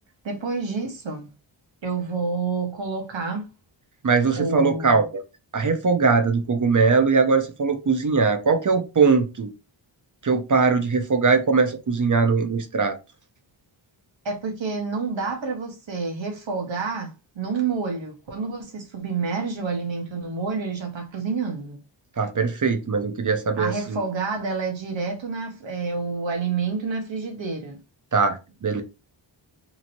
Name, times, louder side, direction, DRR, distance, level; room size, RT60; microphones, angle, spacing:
voice 1, 0.2-1.3 1.8-3.5 4.4-5.1 14.2-21.8 23.6-27.8, right 4 dB, 65° right, 1.0 m, -28 dB
voice 2, 4.0-5.2 5.5-9.5 10.2-13.0 22.2-24.0 28.1-28.8, right 4 dB, 40° right, 0.7 m, -21 dB
2.9 x 2.8 x 2.6 m
wide cardioid pair, 65°, 48 cm